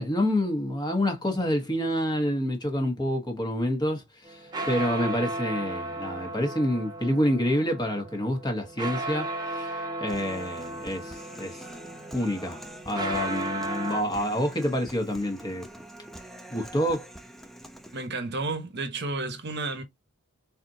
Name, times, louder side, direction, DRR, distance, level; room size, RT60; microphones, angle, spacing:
voice 1, 0.0-11.6 12.1-15.7 16.5-17.1, equal, 20° left, 1.2 m, -28 dB
sound 1, 4.2-14.0, right 2 dB, 20° right, 1.1 m, -35 dB
Human voice, 10.1-18.1, right 1 dB, ahead, 0.6 m, -45 dB
voice 2, 17.9-19.8, right 3 dB, 50° right, 1.1 m, -31 dB
4.2 x 4.1 x 2.7 m
head